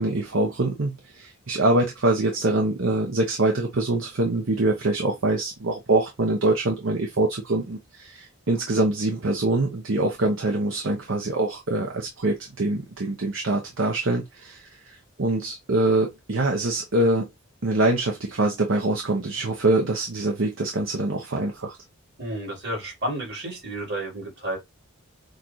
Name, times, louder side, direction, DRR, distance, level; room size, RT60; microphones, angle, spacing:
voice 1, 0.0-17.3 17.6-21.8, right 2 dB, 75° right, 0.9 m, -24 dB
voice 2, 22.2-24.6, right 1 dB, 60° right, 3.5 m, -31 dB
6.4 x 2.4 x 3.1 m
head